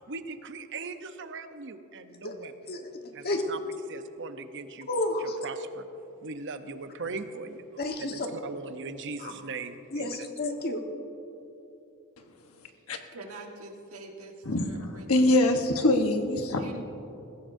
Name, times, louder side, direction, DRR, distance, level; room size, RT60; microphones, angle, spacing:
voice 1, 0.1-2.5 3.1-3.6 3.9-4.9 5.4-5.8 6.2-7.6 8.0-10.1, right 4 dB, 60° right, 9 dB, 0.8 m, -39 dB
voice 2, 2.7-3.4 4.9-5.4 7.8-8.3 9.2-9.3 9.9-10.8, left 2 dB, 50° left, 4 dB, 1.3 m, -31 dB
voice 3, 13.1-15.3 16.6-16.8, right 2 dB, 85° right, 2 dB, 1.6 m, -45 dB
voice 4, 14.4-16.6, left 1 dB, 85° left, 5 dB, 1.2 m, -24 dB
20.5 x 15.5 x 2.7 m, 3.0 s
head